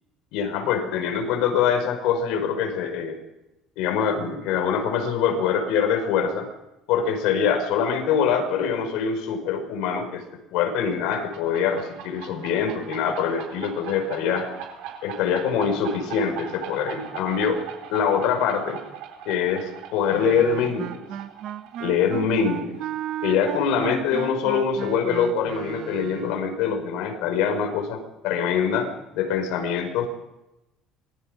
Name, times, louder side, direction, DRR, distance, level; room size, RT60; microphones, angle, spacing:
voice 1, 0.3-3.2 3.8-6.5 6.9-10.2 10.5-14.5 15.0-17.6 17.9-18.8 19.3-21.0 21.8-22.8 23.2-28.9 29.1-30.1, left 7 dB, 80° left, 4 dB, 5.4 m, -24 dB
sound 1, 10.9-24.3, right 9 dB, 80° right, 4.1 m, -40 dB
Wind instrument woodwind instrument, 20.1-26.5, right 11 dB, 50° right, 1.0 m, -34 dB
26.0 x 21.0 x 5.5 m, 0.95 s
cardioid pair, 165°, 0 cm